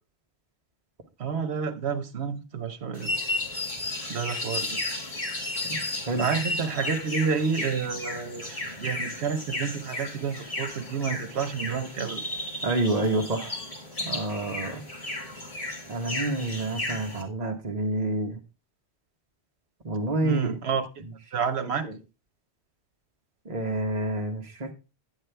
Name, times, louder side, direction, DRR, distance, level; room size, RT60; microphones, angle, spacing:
voice 1, 1.2-3.1 4.1-4.8 6.2-12.2 20.2-20.9 21.3-21.9, right 6 dB, 75° right, 1.2 m, -29 dB
sound 1, 2.9-17.2, left 2 dB, 35° left, 1.9 m, -34 dB
voice 2, 12.6-13.6 14.0-14.8 15.9-18.4 19.8-20.5 21.0-21.1 21.6-22.0 23.4-24.7, right 2 dB, 40° right, 1.2 m, -28 dB
9.5 x 8.2 x 3.4 m
omnidirectional pair, 1.1 m